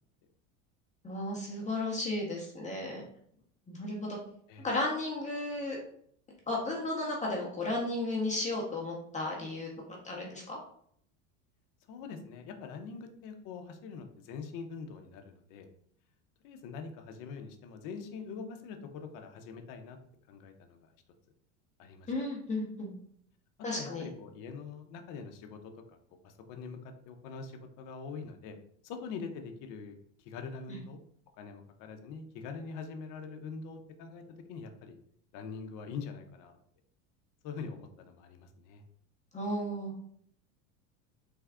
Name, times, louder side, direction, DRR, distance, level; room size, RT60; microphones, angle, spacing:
voice 1, 1.0-3.0 3.7-4.2 4.6-5.8 6.5-9.7 10.0-10.6 22.1-22.9 23.6-24.1 30.7-30.8 39.3-39.9, left 2 dB, 20° left, -3 dB, 0.8 m, -34 dB
voice 2, 11.9-15.7 16.4-20.0 20.3-20.9 21.8-22.1 23.7-25.6 25.9-26.0 26.2-28.5 28.8-30.0 30.2-31.0 31.4-34.2 34.5-35.0 35.3-36.6 37.4-38.8, left 5 dB, 55° left, 5 dB, 0.7 m, -43 dB
3.4 x 2.3 x 3.5 m, 0.65 s
supercardioid pair, 110°, 37 cm